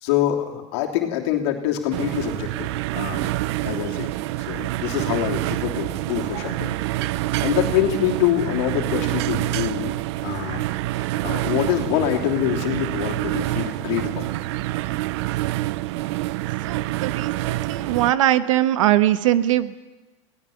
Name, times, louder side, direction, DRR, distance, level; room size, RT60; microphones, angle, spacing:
voice 1, 0.0-2.7 2.9-3.3 3.6-4.1 4.5-6.8 7.2-9.9 10.2-10.6 11.2-14.3, left 11 dB, 60° left, 1 dB, 3.1 m, -25 dB
sound 1, 1.9-18.1, right 17 dB, 60° right, 0.6 m, -27 dB
voice 2, 16.6-19.8, right 13 dB, 85° right, 13 dB, 1.1 m, -21 dB
22.0 x 17.5 x 7.2 m, 1.2 s
supercardioid pair, 150°, 16 cm